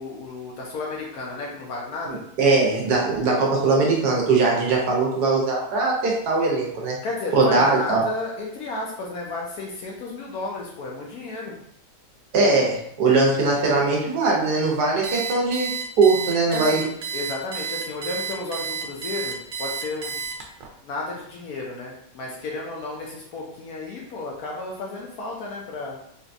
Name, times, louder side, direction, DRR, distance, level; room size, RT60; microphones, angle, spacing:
voice 1, 0.0-2.2 7.0-11.5 16.5-20.2 20.8-26.0, left 2 dB, 65° left, -2 dB, 1.0 m, -33 dB
voice 2, 2.1-7.0 7.3-8.0 12.3-16.9, right 3 dB, 70° right, -2 dB, 1.3 m, -21 dB
Alarm, 15.0-20.7, right 6 dB, 90° right, 1.3 m, -31 dB
3.9 x 2.2 x 2.5 m, 0.70 s
omnidirectional pair, 1.9 m